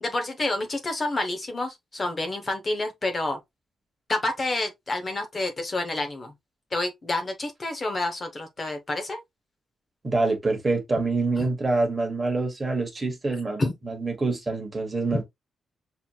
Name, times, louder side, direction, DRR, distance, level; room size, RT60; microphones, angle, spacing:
voice 1, 0.0-3.4 4.1-6.3 6.7-9.2 11.4-11.5 13.6-13.7, left 2 dB, 25° left, 0.5 m, -28 dB
voice 2, 10.0-15.2, right 3 dB, 20° right, 1.0 m, -26 dB
5.9 x 2.8 x 2.2 m
wide cardioid pair, 175°, 0 cm